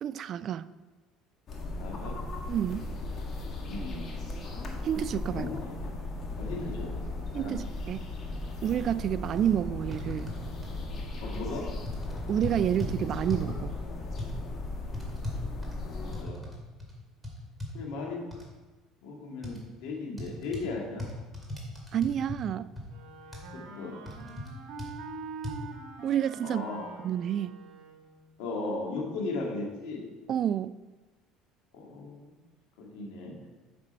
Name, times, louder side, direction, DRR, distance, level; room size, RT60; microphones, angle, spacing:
voice 1, 0.0-0.7 2.5-2.9 4.8-5.4 7.3-8.1 8.6-10.3 12.3-13.7 21.9-22.7 26.0-26.6 27.0-27.6 30.3-30.7, right 10 dB, 45° right, 15 dB, 0.3 m, -29 dB
sound 1, 1.5-16.2, left 2 dB, 40° left, 1.6 m, -37 dB
voice 2, 1.8-2.2 3.7-4.1 5.3-5.8 6.4-6.9 7.3-7.6 11.2-11.6 15.8-16.4 17.7-18.2 19.0-21.0 23.5-24.0 26.4-26.8 28.4-30.0 31.7-32.3 32.8-33.3, left 3 dB, 80° left, -1 dB, 2.1 m, -36 dB
sound 2, 8.9-9.0 9.4-9.5 9.9-10.8 11.3-11.5 11.9-12.9 13.3-13.6 14.2-14.3 14.9-16.5 16.8-16.9 17.2-17.7 18.3-18.4 19.4-19.6 20.2-20.7 21.0-22.4 22.8-22.9 23.3-23.5 24.1-24.5 24.8-24.9 25.4-25.5, left 1 dB, ahead, 2.2 m, -38 dB
Wind instrument woodwind instrument, 22.9-28.2, right 4 dB, 70° right, 1.4 m, -44 dB
8.6 x 6.1 x 4.4 m, 1.2 s
cardioid pair, 110°, 0 cm